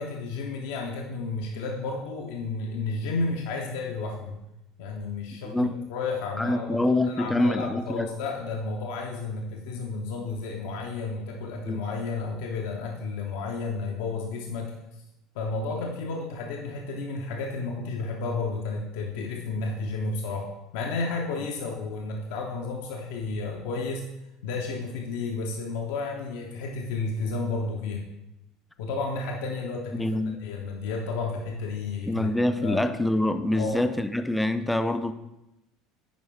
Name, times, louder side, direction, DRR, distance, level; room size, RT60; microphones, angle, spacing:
voice 1, 0.0-4.4 4.8-14.7 15.3-24.0 24.4-28.0 28.8-30.1 30.4-32.3 32.6-32.9 33.5-33.9, left 3 dB, 60° left, 0 dB, 0.8 m, -32 dB
voice 2, 6.4-8.1 11.7-11.8 29.9-30.4 32.1-35.1, left 1 dB, 5° left, 9 dB, 0.5 m, -25 dB
9.2 x 5.1 x 3.3 m, 0.92 s
figure-of-eight pair, 65°, 0 cm